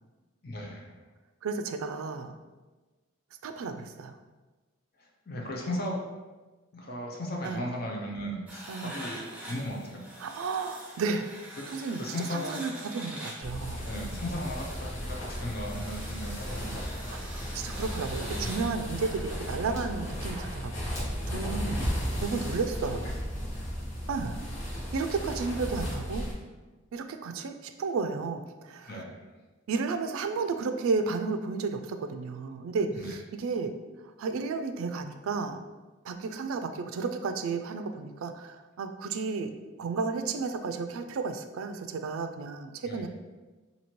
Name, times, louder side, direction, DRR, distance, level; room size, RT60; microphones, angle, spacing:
voice 1, 0.4-1.0 5.0-6.0 6.7-10.1 11.6-11.7 12.0-12.6 13.7-16.9 18.1-18.6 19.0-19.1 21.6-21.9 28.9-29.3 32.9-33.1 42.8-43.1, left 1 dB, 45° left, -1 dB, 0.7 m, -37 dB
voice 2, 1.4-2.4 3.4-4.2 7.4-7.6 8.7-9.0 10.2-11.3 11.7-12.0 12.3-13.9 17.1-21.9 22.2-23.1 24.1-24.4 24.9-26.3 26.9-29.0 29.7-33.7 34.2-35.6 36.0-39.5 39.8-43.1, right 4 dB, 80° right, 8 dB, 0.3 m, -33 dB
sound 1, 8.5-18.7, right 1 dB, 5° right, 0.6 m, -45 dB
sound 2, 13.4-26.3, equal, 75° left, 1.3 m, -35 dB
3.0 x 2.8 x 4.3 m, 1.2 s
head